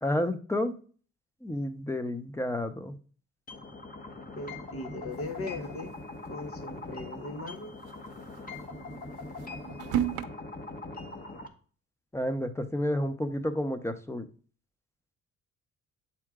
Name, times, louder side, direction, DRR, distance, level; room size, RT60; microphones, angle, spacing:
voice 1, 0.0-0.7 1.4-3.0 12.1-14.2, left 1 dB, 10° left, 0.8 m, -30 dB
sound 1, 3.5-11.5, left 2 dB, 30° left, 1.2 m, -42 dB
voice 2, 4.3-5.9 6.2-7.7, left 2 dB, 50° left, 1.1 m, -38 dB
sound 2, 5.1-6.3 6.6-6.7 7.0-7.1 7.7-10.3, right 10 dB, 80° right, 0.7 m, -35 dB
7.7 x 4.4 x 3.6 m
cardioid pair, 90°, 30 cm